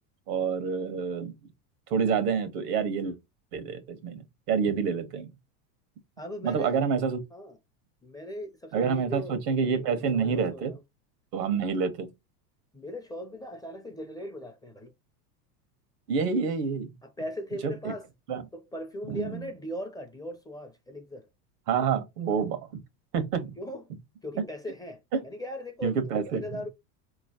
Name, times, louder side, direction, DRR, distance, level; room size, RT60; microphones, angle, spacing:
voice 1, 0.3-1.3 1.9-3.2 3.5-4.2 4.5-5.3 6.4-7.2 8.7-10.8 11.3-12.1 16.1-16.9 17.6-17.9 18.3-18.4 19.1-19.5 21.7-22.6 23.1-23.6 24.4-24.5 25.1-25.2 25.8-26.6, right 6 dB, 80° right, 1.3 m, -28 dB
voice 2, 6.2-6.8 7.3-7.5 8.0-9.4 9.8-10.8 12.7-14.9 17.0-18.1 18.5-21.3 23.6-23.8 24.2-26.7, left 1 dB, 10° left, 0.5 m, -39 dB
4.2 x 3.1 x 2.7 m
supercardioid pair, 120°, 47 cm